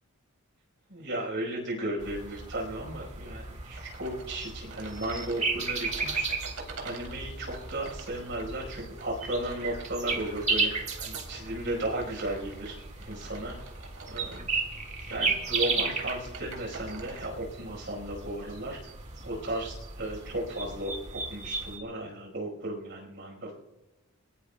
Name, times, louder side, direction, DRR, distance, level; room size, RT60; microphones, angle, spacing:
voice 1, 0.9-6.3 6.8-12.8 13.0-13.6 14.1-14.6 15.1-18.8 19.2-23.5, right 1 dB, 55° right, 0 dB, 4.9 m, -35 dB
sound 1, 2.0-21.8, right 4 dB, 30° right, 1.9 m, -35 dB
sound 2, 3.7-17.3, right 4 dB, 85° right, 3.4 m, -47 dB
22.0 x 21.5 x 2.3 m, 1.0 s
head